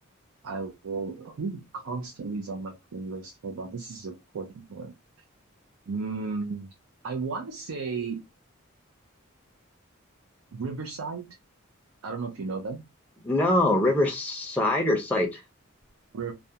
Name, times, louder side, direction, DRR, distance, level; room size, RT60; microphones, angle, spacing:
voice 1, 0.4-4.9 5.9-6.7 7.0-8.2 10.5-11.3 12.0-12.8 16.1-16.3, right 4 dB, 85° right, 0.5 m, -34 dB
voice 2, 13.2-15.4, left 1 dB, 5° left, 0.4 m, -24 dB
2.4 x 2.1 x 2.7 m
head